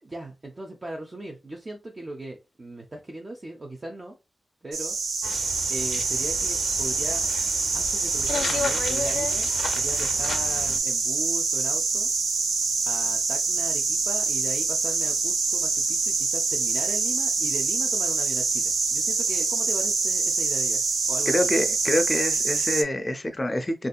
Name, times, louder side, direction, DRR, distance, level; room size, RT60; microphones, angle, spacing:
voice 1, 0.0-4.2 4.6-5.0 5.7-7.3 7.7-9.5 9.8-12.1 12.8-21.5, right 1 dB, 30° right, 0.5 m, -38 dB
sound 1, 4.7-22.8, right 4 dB, 85° right, 0.5 m, -25 dB
sound 2, 5.2-10.8, left 5 dB, 80° left, 0.4 m, -34 dB
voice 2, 21.3-23.9, left 1 dB, 20° left, 0.5 m, -26 dB
3.5 x 2.7 x 2.3 m
wide cardioid pair, 115°, 0 cm